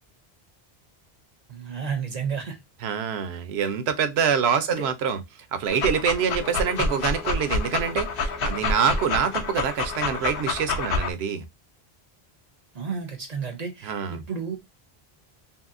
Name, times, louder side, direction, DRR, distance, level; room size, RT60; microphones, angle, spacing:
voice 1, 1.5-2.6 4.8-4.9 6.7-7.1 12.7-14.6, right 6 dB, 50° right, 0.5 m, -32 dB
voice 2, 2.8-5.2 5.5-11.4 13.8-14.2, right 7 dB, 80° right, 0.8 m, -25 dB
Dog, 5.7-11.1, left 4 dB, 65° left, 0.8 m, -28 dB
Wind instrument woodwind instrument, 6.3-10.8, equal, 5° right, 0.5 m, -46 dB
2.8 x 2.7 x 2.4 m
omnidirectional pair, 1.1 m